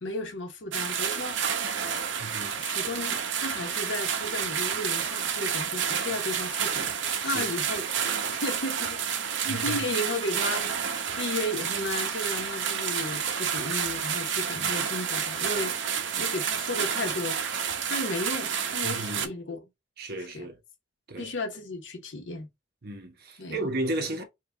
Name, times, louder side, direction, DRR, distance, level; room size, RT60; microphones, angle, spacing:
voice 1, 0.0-1.4 2.6-6.9 7.2-7.9 8.3-9.0 9.4-10.8 11.2-15.7 16.2-17.4 17.8-19.6 20.2-20.5 21.2-22.5 23.4-23.7, left 2 dB, 70° left, 1.0 m, -34 dB
sound 1, 0.7-19.3, right 7 dB, 70° right, 0.7 m, -30 dB
voice 2, 2.2-2.6 7.2-7.5 9.4-9.9 14.5-14.9 18.8-19.3 20.0-20.6 21.1-21.3 22.8-24.2, right 2 dB, 55° right, 1.1 m, -34 dB
4.7 x 2.4 x 3.3 m
head